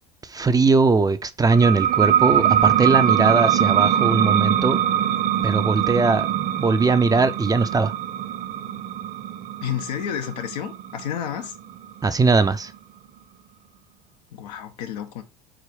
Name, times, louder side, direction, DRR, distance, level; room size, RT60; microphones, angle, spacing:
voice 1, 0.2-4.8 5.4-7.9 12.0-12.7, right 4 dB, 20° right, 0.7 m, -20 dB
sound 1, 1.5-12.8, right 10 dB, 45° right, 1.1 m, -22 dB
voice 2, 9.6-11.5 14.3-15.2, left 10 dB, 75° left, 1.2 m, -30 dB
5.0 x 4.5 x 4.6 m
hypercardioid pair, 75°, 20 cm